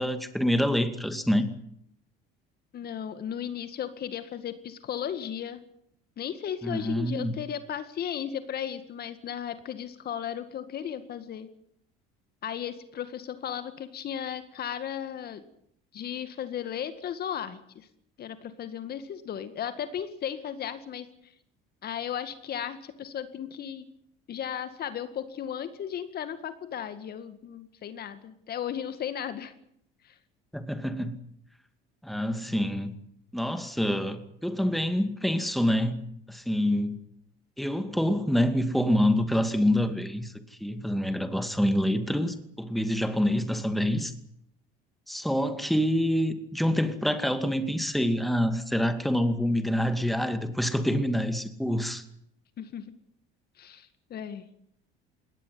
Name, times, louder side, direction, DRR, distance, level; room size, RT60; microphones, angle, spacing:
voice 1, 0.0-1.5 6.6-7.3 30.5-31.2 32.0-32.9 33.3-36.0 36.3-37.0 37.6-40.3 40.6-44.1 45.1-52.0, equal, ahead, 2.4 m, -26 dB
voice 2, 2.7-5.6 6.2-11.5 12.4-15.4 15.9-17.9 18.2-21.3 21.8-23.9 24.3-29.5 30.0-30.2 52.6-52.9 53.6-54.5, left 9 dB, 50° left, 2.0 m, -35 dB
21.0 x 18.0 x 9.5 m
supercardioid pair, 105°, 21 cm